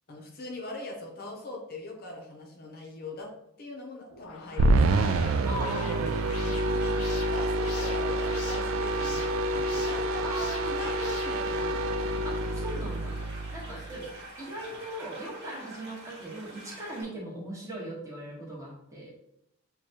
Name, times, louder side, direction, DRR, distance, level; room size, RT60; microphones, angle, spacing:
voice 1, 0.1-3.3 3.6-5.2 6.6-12.1 13.6-13.8, left 2 dB, 45° left, 0 dB, 0.6 m, -41 dB
sound 1, 4.1-12.3, left 5 dB, 90° left, 0.5 m, -46 dB
sound 2, 4.6-14.0, right 2 dB, 70° right, 0.3 m, -27 dB
sound 3, 4.8-17.0, right 2 dB, 50° right, 1.0 m, -46 dB
voice 2, 5.4-6.8 10.2-10.7 12.2-13.2 13.5-14.1 14.4-19.1, right 1 dB, 15° right, -5 dB, 1.2 m, -39 dB
6.2 x 2.2 x 2.8 m, 0.78 s
head